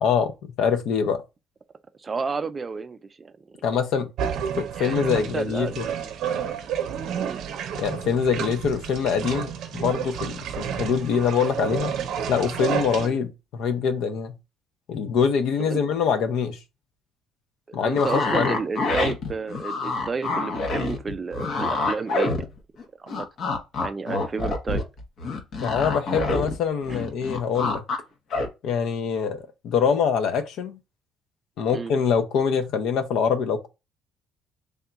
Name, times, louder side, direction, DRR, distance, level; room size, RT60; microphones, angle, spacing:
voice 1, 0.0-1.2 3.6-4.1 4.6-5.8 7.7-11.9 12.3-14.3 14.9-16.6 17.7-18.6 25.6-27.8 28.6-30.8 31.6-33.7, left 6 dB, 75° left, 0.6 m, -24 dB
voice 2, 2.0-3.7 4.7-6.2 7.1-7.4 13.0-13.2 15.6-15.8 17.7-22.5 23.0-23.3 23.8-24.8 26.4-26.5 26.9-27.0 31.7-31.9, right 4 dB, 25° right, 0.3 m, -32 dB
sound 1, 4.2-13.1, right 8 dB, 70° right, 0.6 m, -30 dB
sound 2, 17.9-22.8 23.1-26.5 26.8-28.0 28.3-28.5, left 2 dB, 50° left, 0.9 m, -26 dB
3.5 x 2.3 x 3.9 m
cardioid pair, 150°, 0 cm